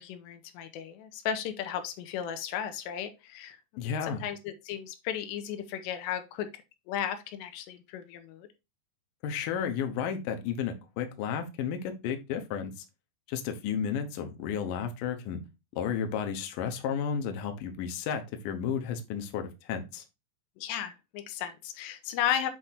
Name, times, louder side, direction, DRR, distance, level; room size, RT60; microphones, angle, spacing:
voice 1, 0.0-3.6 4.0-6.5 6.9-8.5 20.6-22.5, left 9 dB, 90° left, 3.0 m, -34 dB
voice 2, 3.8-4.2 9.2-12.7 13.3-15.4 15.7-20.0, left 7 dB, 70° left, 2.2 m, -32 dB
7.9 x 3.5 x 4.2 m
omnidirectional pair, 5.0 m